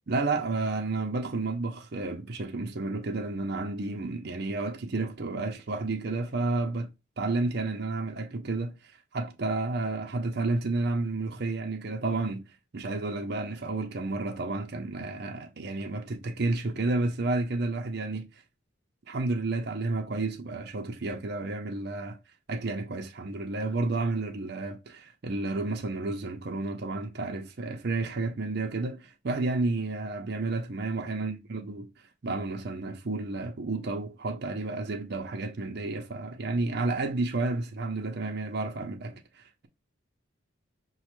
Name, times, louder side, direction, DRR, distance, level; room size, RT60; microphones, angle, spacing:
voice 1, 0.1-6.9 7.2-8.7 9.1-12.4 12.7-18.3 19.1-22.2 22.5-31.9 32.2-39.7, right 2 dB, 50° right, 0.6 m, -31 dB
6.1 x 2.1 x 3.0 m
head